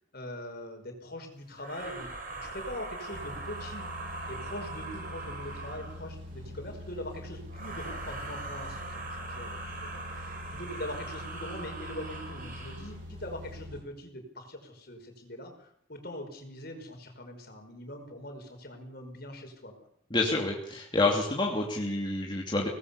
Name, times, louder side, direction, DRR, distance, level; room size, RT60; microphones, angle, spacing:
voice 1, 0.1-3.9 4.3-19.9, left 1 dB, 50° left, 5 dB, 5.3 m, -42 dB
sound 1, 1.6-6.1 7.5-13.0, right 2 dB, 45° right, 5.0 m, -41 dB
sound 2, 3.1-13.8, left 1 dB, 80° right, 7.7 m, -44 dB
voice 2, 20.1-22.7, left 2 dB, 25° left, -1 dB, 2.9 m, -28 dB
24.5 x 19.0 x 7.0 m, 0.66 s
head